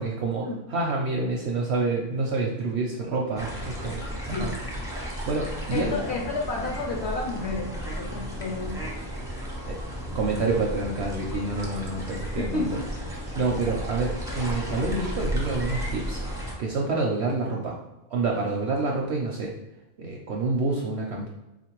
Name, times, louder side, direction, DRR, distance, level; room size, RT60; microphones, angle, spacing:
voice 1, 0.0-4.5 5.3-6.0 9.7-9.8 10.1-12.8 13.3-16.2 16.6-17.8 18.1-19.5 20.0-21.3, right 3 dB, 65° right, -1 dB, 0.7 m, -28 dB
sound 1, 3.4-16.5, equal, 5° right, 0.4 m, -33 dB
voice 2, 5.7-8.8 12.4-12.9, left 3 dB, 60° left, 0 dB, 0.8 m, -31 dB
4.0 x 2.5 x 2.9 m, 0.96 s
omnidirectional pair, 1.5 m